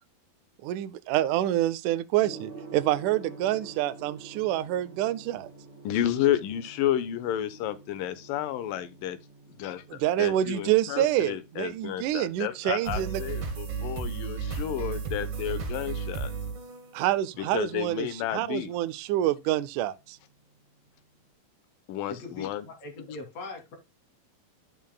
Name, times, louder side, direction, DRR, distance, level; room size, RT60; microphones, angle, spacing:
voice 1, 0.6-5.5 9.9-13.2 16.9-20.2, right 13 dB, 80° right, 1.9 m, -27 dB
Gong, 2.2-21.2, right 4 dB, 25° right, 0.7 m, -51 dB
voice 2, 5.8-9.2 9.5-16.3 17.4-18.7 21.9-22.7, left 11 dB, 70° left, 2.6 m, -31 dB
sound 1, 12.8-17.6, right 5 dB, 45° right, 3.5 m, -34 dB
voice 3, 22.1-23.8, left 3 dB, 45° left, 3.9 m, -40 dB
12.5 x 7.1 x 2.3 m
omnidirectional pair, 4.3 m